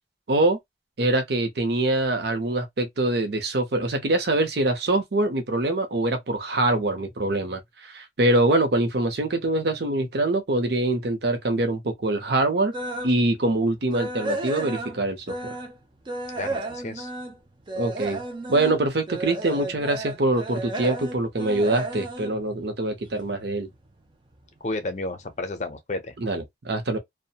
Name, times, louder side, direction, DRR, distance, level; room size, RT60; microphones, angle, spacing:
voice 1, 0.3-0.6 1.0-12.7 13.0-15.5 17.8-18.2 18.5-23.7 26.2-27.0, right 2 dB, 70° right, 0.7 m, -24 dB
sound 1, 12.7-13.2 13.6-15.8 16.1-23.3 23.6-23.9 24.4-24.5 24.9-25.0, right 2 dB, 25° right, 0.5 m, -33 dB
voice 2, 16.4-17.1 24.6-26.1, left 2 dB, 40° left, 0.5 m, -32 dB
2.4 x 2.1 x 2.7 m
head